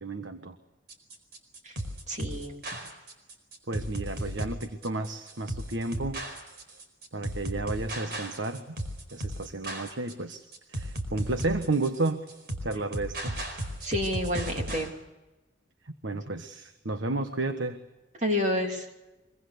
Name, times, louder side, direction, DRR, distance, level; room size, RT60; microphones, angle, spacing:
voice 1, 0.0-0.6 3.7-6.2 7.1-8.8 9.1-12.2 12.6-13.4 15.8-17.8, right 2 dB, 80° right, 8 dB, 1.4 m, -32 dB
sound 1, 0.9-14.9, right 1 dB, 55° right, 4.6 m, -35 dB
voice 2, 2.1-2.6 13.8-14.9 18.2-18.9, left 1 dB, 40° right, 3 dB, 3.1 m, -29 dB
25.0 x 24.0 x 6.8 m, 1.1 s
head